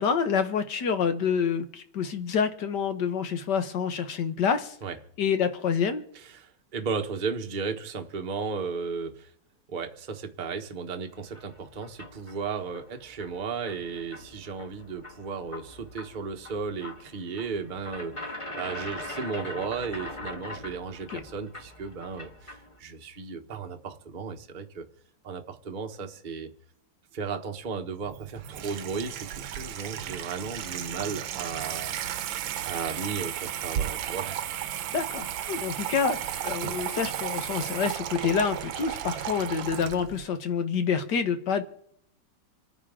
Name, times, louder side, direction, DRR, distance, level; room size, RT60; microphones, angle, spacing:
voice 1, 0.0-4.8 5.2-6.0 21.1-21.2 34.9-41.6, left 6 dB, 65° left, 9 dB, 1.8 m, -27 dB
voice 2, 6.2-9.3 9.7-24.8 25.2-26.5 27.1-34.4, right 5 dB, 30° right, 5 dB, 1.0 m, -35 dB
sound 1, 11.1-22.8, left 1 dB, 15° left, 1.5 m, -42 dB
Water tap faucet / Sink (filling or washing), 28.0-40.2, right 11 dB, 80° right, 1.5 m, -34 dB
28.0 x 9.6 x 3.7 m, 0.70 s
omnidirectional pair, 2.1 m